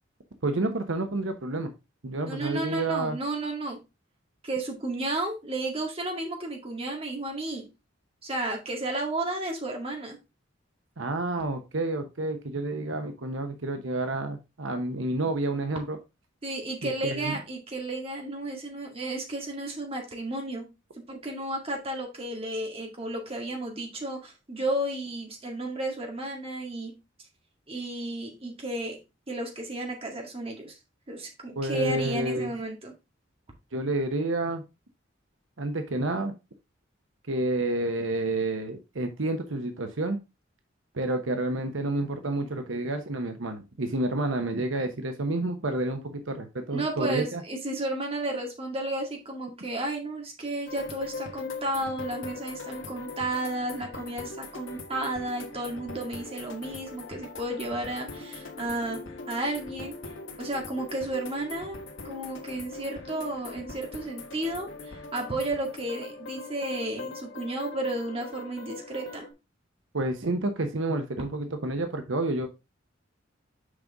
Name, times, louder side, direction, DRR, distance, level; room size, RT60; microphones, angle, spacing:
voice 1, 0.4-1.7 2.0-3.2 11.0-16.0 16.8-17.4 31.6-32.5 33.7-34.6 35.6-36.3 37.3-40.2 40.9-47.4 69.9-72.5, right 2 dB, 80° right, 7 dB, 1.0 m, -29 dB
voice 2, 2.2-3.8 4.4-7.7 8.2-10.2 16.4-20.6 21.1-26.9 27.7-29.0 29.3-30.8 31.1-32.9 46.7-59.0 59.3-59.9 60.4-61.8 62.0-69.3, right 2 dB, 30° right, 1 dB, 2.0 m, -33 dB
sound 1, 50.7-69.3, left 3 dB, 75° left, 1.4 m, -41 dB
6.7 x 5.3 x 3.5 m, 0.25 s
head